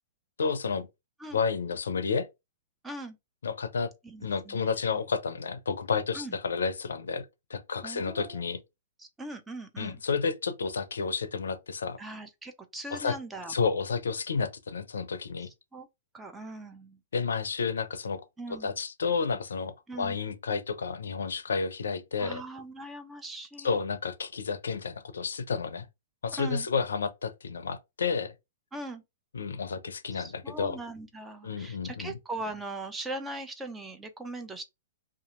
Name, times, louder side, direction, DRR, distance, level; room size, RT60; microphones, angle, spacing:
voice 1, 0.4-0.9 1.3-2.3 3.4-3.9 4.2-8.6 9.8-12.0 12.9-13.2 13.5-15.5 17.1-18.2 18.6-22.4 23.6-25.9 26.2-28.3 29.3-30.8 31.4-32.1, left 5 dB, 80° left, 0.4 m, -31 dB
voice 2, 2.8-3.2 4.0-4.7 6.1-6.4 7.8-8.5 9.0-10.0 12.0-13.6 15.4-15.9 16.1-17.0 18.4-18.7 19.9-20.2 22.2-23.8 26.3-26.7 28.7-29.0 30.1-34.6, right 2 dB, 10° right, 0.5 m, -40 dB
2.7 x 2.4 x 2.4 m
hypercardioid pair, 125°, 0 cm